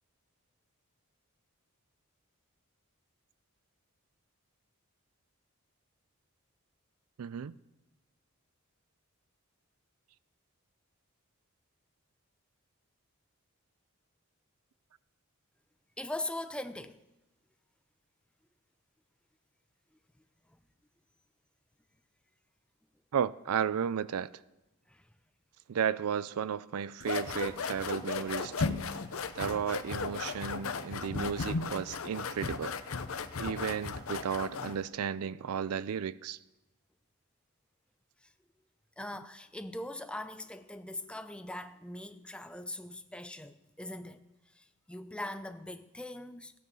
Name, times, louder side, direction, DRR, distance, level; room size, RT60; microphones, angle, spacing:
voice 1, 7.2-7.5 23.1-24.3 25.7-28.8 29.3-32.8 33.4-36.4, right 8 dB, 80° right, 0.4 m, -34 dB
voice 2, 16.0-17.0 24.9-25.1 39.0-44.2 44.5-46.5, left 1 dB, 5° left, 0.5 m, -41 dB
sound 1, 27.0-34.8, left 4 dB, 70° left, 0.7 m, -36 dB
16.0 x 9.4 x 5.4 m
head